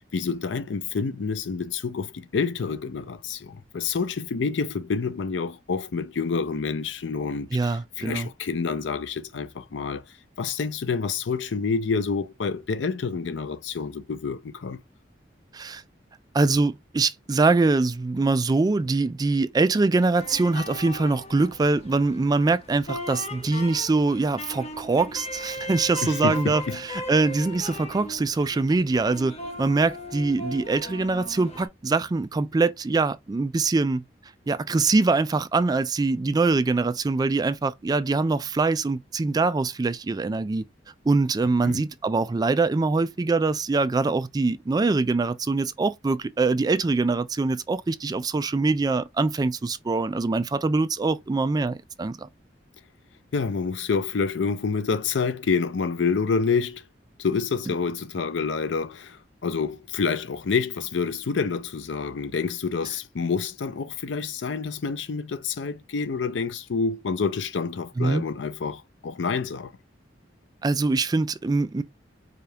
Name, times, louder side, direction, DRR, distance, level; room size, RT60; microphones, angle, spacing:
voice 1, 0.0-10.0 10.4-14.8 26.0-26.8 41.6-41.8 53.3-56.8 57.2-69.7, left 5 dB, 75° left, 0.5 m, -28 dB
voice 2, 7.5-8.3 15.5-15.8 16.3-34.0 34.5-40.6 41.1-52.3 68.0-68.2 70.6-71.8, right 3 dB, 20° right, 0.3 m, -23 dB
sound 1, 20.2-31.7, left 1 dB, 35° left, 1.0 m, -38 dB
4.9 x 2.4 x 2.7 m
head